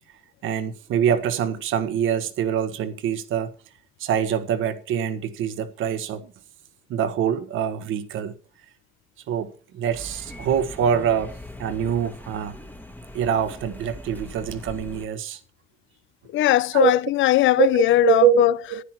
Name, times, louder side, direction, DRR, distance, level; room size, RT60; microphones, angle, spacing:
voice 1, 0.4-3.5 4.0-6.3 6.9-8.3 9.3-12.6 13.1-15.4 16.7-16.9 17.6-18.8, right 9 dB, 85° right, 1.3 m, -24 dB
sound 1, 9.9-15.1, left 1 dB, 10° left, 1.4 m, -41 dB
voice 2, 16.3-18.5, left 16 dB, 75° left, 0.5 m, -19 dB
11.0 x 10.0 x 4.5 m
cardioid pair, 90°, 20 cm